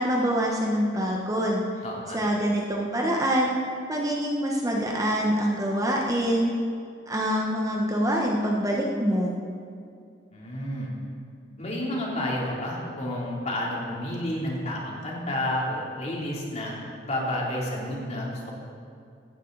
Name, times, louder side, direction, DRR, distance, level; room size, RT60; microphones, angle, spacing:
voice 1, 0.0-1.6 2.1-3.5 3.9-6.5 7.1-9.3, equal, 20° right, -1 dB, 1.3 m, -25 dB
voice 2, 1.8-2.2 10.3-10.9 11.6-16.7 17.0-18.5, left 1 dB, 40° left, -4 dB, 3.3 m, -30 dB
16.5 x 14.5 x 4.1 m, 2.4 s
head